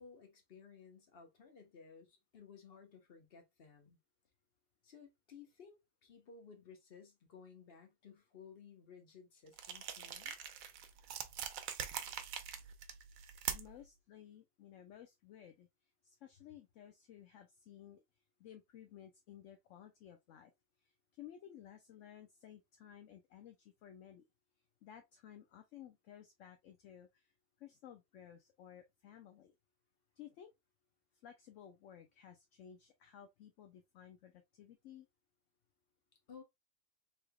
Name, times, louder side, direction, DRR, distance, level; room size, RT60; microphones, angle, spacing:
voice 1, 0.0-4.0 4.8-10.4 36.3-36.4, left 6 dB, 45° left, 1.2 m, -57 dB
sound 1, 9.5-13.9, right 9 dB, 80° right, 1.0 m, -43 dB
voice 2, 13.5-15.7 16.0-18.0 18.4-20.5 20.8-24.3 24.8-29.5 30.2-30.5 31.2-35.1, left 10 dB, 70° left, 0.9 m, -56 dB
3.4 x 3.4 x 2.2 m
omnidirectional pair, 1.5 m